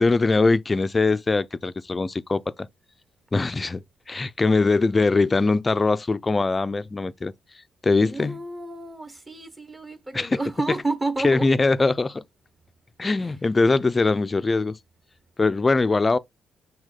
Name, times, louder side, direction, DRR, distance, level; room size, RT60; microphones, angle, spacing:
voice 1, 0.0-2.7 3.3-7.3 7.8-8.4 10.1-10.4 11.2-12.2 13.0-14.8 15.4-16.2, left 3 dB, 25° left, 0.4 m, -22 dB
voice 2, 8.0-11.5, right 3 dB, 20° right, 1.0 m, -30 dB
6.2 x 2.2 x 3.8 m
cardioid pair, 90°, 0 cm